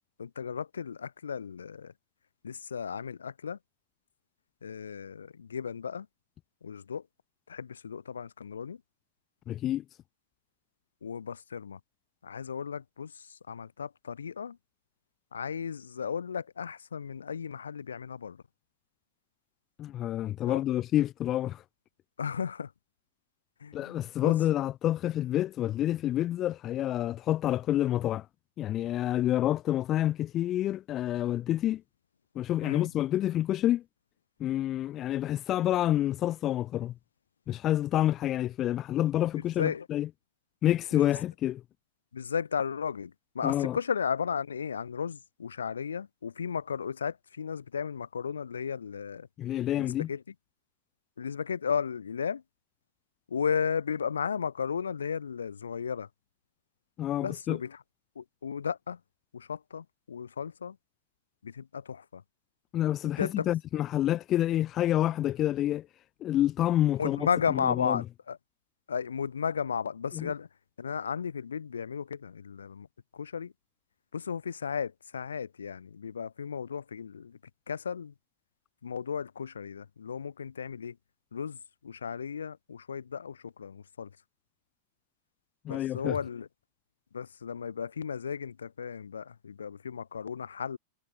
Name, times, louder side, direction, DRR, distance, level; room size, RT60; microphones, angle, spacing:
voice 1, 0.2-1.9 2.4-3.6 4.6-6.1 6.6-7.0 7.5-8.8 11.0-11.8 12.2-14.6 15.3-18.4 20.5-20.6 22.2-22.7 23.6-24.3 32.6-32.9 39.6-39.9 40.9-41.0 42.1-49.3 49.8-50.2 51.2-52.4 53.3-56.1 57.2-57.8 58.2-59.0 59.3-60.8 61.4-62.2 63.2-63.5 67.0-68.4 68.9-70.5 70.8-72.9 73.1-73.5 74.1-77.4 77.7-78.1 78.8-81.0 81.3-81.6 81.8-84.1 85.7-86.5 87.1-90.8, left 6 dB, 70° left, 3.9 m, -34 dB
voice 2, 9.5-9.8 19.8-21.6 23.7-28.3 28.6-31.8 32.4-33.8 34.4-36.9 37.5-40.1 40.6-41.6 43.4-43.8 49.4-50.1 57.0-57.6 62.7-65.9 66.2-68.0 70.1-70.3 85.6-86.2, left 13 dB, 30° left, 2.2 m, -28 dB
figure-of-eight pair, 90°, 0 cm